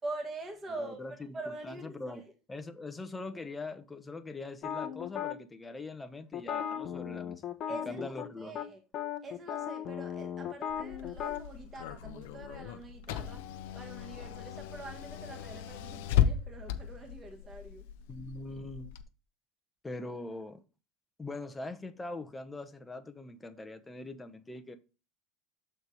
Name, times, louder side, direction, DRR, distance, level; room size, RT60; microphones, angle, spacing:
voice 1, 0.0-1.1 1.3-2.3 7.7-8.8 9.2-13.5 13.7-17.8, right 2 dB, 30° right, 1.6 m, -44 dB
voice 2, 0.8-1.4 1.6-2.2 2.5-7.4 7.7-8.6 18.1-18.9 19.8-20.6 21.2-24.8, left 2 dB, 15° left, 0.8 m, -42 dB
sound 1, 4.6-5.4 6.3-8.3 8.5-8.7 8.9-11.4, left 9 dB, 45° left, 0.9 m, -36 dB
Car / Engine, 10.7-19.0, left 9 dB, 80° left, 0.7 m, -35 dB
6.6 x 4.2 x 4.8 m
supercardioid pair, 105°, 0 cm